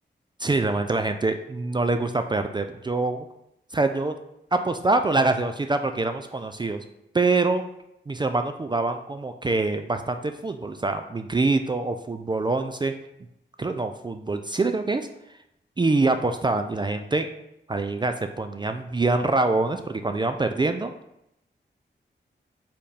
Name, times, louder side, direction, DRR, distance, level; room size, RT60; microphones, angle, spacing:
voice 1, 0.4-3.2 3.7-4.1 4.5-6.8 7.1-7.6 8.1-12.9 13.6-15.1 15.8-17.3 17.7-20.9, right 3 dB, 25° right, 7 dB, 0.3 m, -25 dB
4.5 x 3.6 x 3.3 m, 0.82 s
cardioid pair, 55°, 19 cm